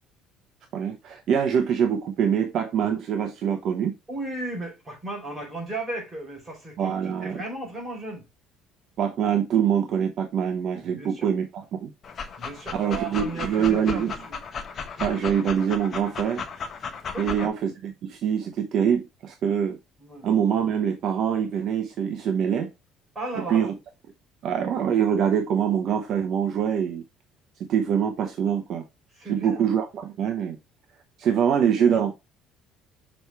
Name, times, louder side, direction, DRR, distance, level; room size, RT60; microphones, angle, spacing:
voice 1, 0.7-3.9 6.8-7.3 9.0-11.9 12.8-14.1 15.0-16.4 17.2-19.8 20.2-22.7 23.5-23.7 24.4-27.0 27.7-28.8 29.3-30.6 31.2-32.1, right 8 dB, 45° right, 0.8 m, -24 dB
voice 2, 4.1-8.3 11.0-11.3 12.4-14.4 17.1-17.5 20.0-20.3 23.1-23.7 29.1-29.7, right 2 dB, 10° right, 4.0 m, -35 dB
Dog, 12.0-17.5, left 5 dB, 30° left, 0.9 m, -35 dB
6.3 x 4.6 x 3.4 m
cardioid pair, 160°, 0 cm